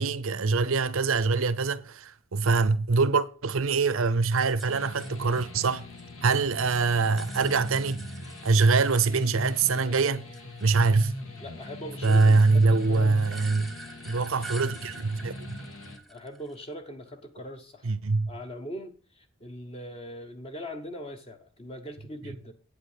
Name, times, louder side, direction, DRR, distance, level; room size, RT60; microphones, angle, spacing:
voice 1, 0.0-5.8 6.2-8.1 8.4-10.2 10.6-11.1 12.0-13.7 14.1-15.6 17.8-18.3, right 4 dB, 75° right, 0.7 m, -24 dB
sound 1, 4.4-6.4 6.7-10.0 10.3-16.7, right 2 dB, ahead, 0.6 m, -47 dB
sound 2, 4.7-16.0, left 1 dB, 80° left, 2.0 m, -41 dB
voice 2, 11.4-13.2 16.1-17.9 18.3-22.5, equal, 30° left, 0.9 m, -41 dB
8.6 x 8.0 x 5.0 m
head